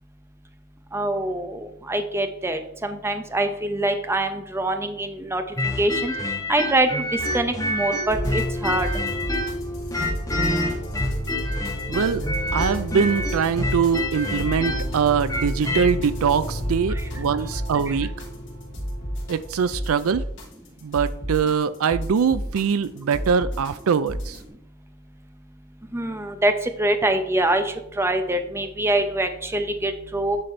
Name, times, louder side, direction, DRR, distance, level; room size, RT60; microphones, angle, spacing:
voice 1, 0.9-5.4 5.8-6.1 6.5-8.9 16.9-17.1 17.9-18.0 25.9-30.4, right 1 dB, 10° right, 7 dB, 0.6 m, -24 dB
sound 1, 5.6-9.6 9.9-15.9, left 1 dB, 15° left, 1.3 m, -27 dB
sound 2, 8.1-24.5, equal, 55° left, 2.9 m, -31 dB
voice 2, 11.9-12.2 12.5-18.1 19.3-20.2 20.8-24.4, right 6 dB, 70° right, 14 dB, 0.4 m, -23 dB
9.9 x 4.1 x 4.3 m, 0.74 s
head